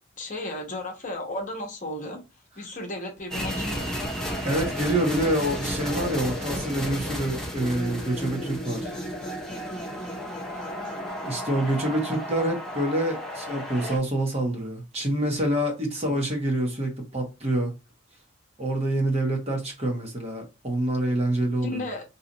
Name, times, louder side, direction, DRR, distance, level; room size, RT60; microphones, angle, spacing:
voice 1, 0.2-2.2 2.6-4.0 10.5-10.8 21.6-22.0, left 1 dB, 40° left, 0.9 m, -34 dB
sound 1, 3.3-14.0, equal, 5° left, 0.9 m, -33 dB
voice 2, 4.4-8.9 11.2-17.7 18.6-21.8, right 1 dB, 30° right, 0.9 m, -26 dB
2.8 x 2.4 x 3.8 m
head